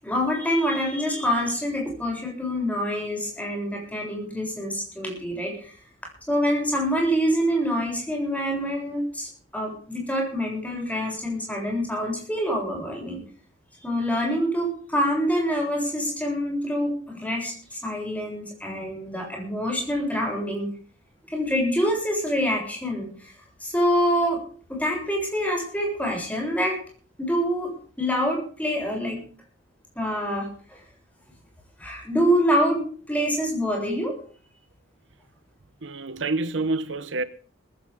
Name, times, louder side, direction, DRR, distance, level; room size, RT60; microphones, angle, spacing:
voice 1, 0.0-5.7 6.3-13.2 13.8-20.7 21.3-23.3 23.6-24.4 24.7-26.8 27.2-29.2 30.0-30.8 31.8-34.2, equal, 10° left, 7.4 m, -26 dB
voice 2, 35.8-37.2, right 2 dB, 70° right, 1.0 m, -27 dB
19.5 x 16.0 x 3.6 m
head